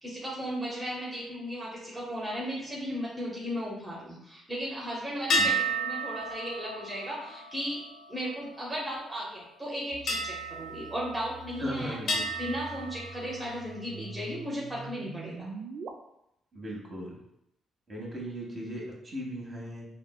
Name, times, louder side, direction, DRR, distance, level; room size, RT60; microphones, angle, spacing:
voice 1, 0.0-5.5 5.8-7.8 8.1-15.5, equal, 10° right, -6 dB, 0.8 m, -36 dB
sound 1, 5.3-9.0 10.1-11.6 12.1-13.8, right 1 dB, 65° left, 0.7 m, -33 dB
sound 2, 9.9-15.9, right 4 dB, 60° right, 0.3 m, -45 dB
voice 2, 11.6-12.2 16.5-17.2 17.9-19.9, equal, 30° right, -3 dB, 1.0 m, -37 dB
4.2 x 2.1 x 2.2 m, 0.80 s
cardioid pair, 90°, 0 cm